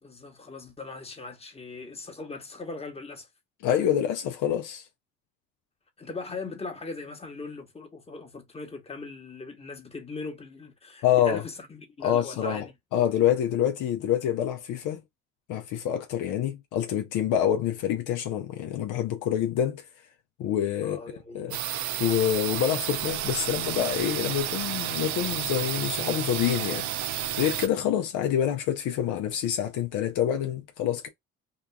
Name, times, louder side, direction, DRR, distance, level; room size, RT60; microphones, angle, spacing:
voice 1, 0.0-3.3 6.0-12.7 20.8-21.5, left 3 dB, 20° left, 1.0 m, -39 dB
voice 2, 3.6-4.8 11.0-11.4 12.0-12.7 12.9-15.0 15.5-19.8 20.4-21.0 21.3-21.6 22.0-26.9 27.4-31.1, left 10 dB, 70° left, 0.6 m, -26 dB
sound 1, 21.5-27.7, right 11 dB, 60° right, 0.5 m, -31 dB
2.9 x 2.2 x 2.2 m
supercardioid pair, 60°, 32 cm